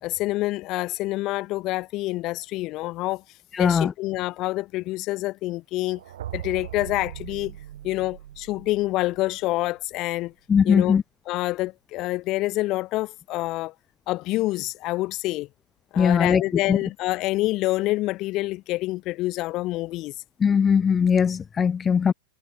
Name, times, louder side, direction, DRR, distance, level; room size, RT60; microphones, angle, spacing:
voice 1, 0.0-3.2 3.6-6.0 6.3-7.6 7.8-10.3 10.6-11.0 11.3-13.7 14.1-15.5 15.9-20.1, left 18 dB, 35° left, 2.8 m, -27 dB
voice 2, 3.5-3.9 10.5-11.0 16.0-16.4 16.7-16.8 20.4-22.1, left 7 dB, 20° left, 0.5 m, -20 dB
sound 1, 5.8-9.8, right 12 dB, 70° right, 2.2 m, -40 dB
hypercardioid pair, 135°, 0 cm